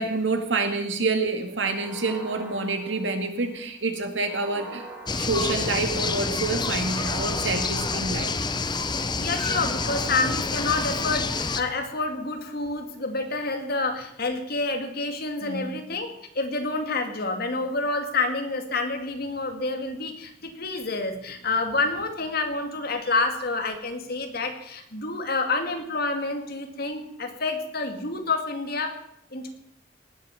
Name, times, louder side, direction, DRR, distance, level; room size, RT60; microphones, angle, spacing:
voice 1, 0.0-4.8 5.1-8.3 15.4-15.8, right 3 dB, 85° right, 6 dB, 2.2 m, -27 dB
sound 1, 1.7-3.6 4.2-6.1 6.8-8.6 9.3-11.2, right 2 dB, 5° right, 3.7 m, -44 dB
sound 2, 5.1-11.6, left 4 dB, 25° left, 0.8 m, -28 dB
voice 2, 9.2-16.1 16.4-29.0 29.3-29.5, left 3 dB, 55° left, 5 dB, 2.3 m, -28 dB
18.5 x 8.2 x 7.1 m, 0.75 s
head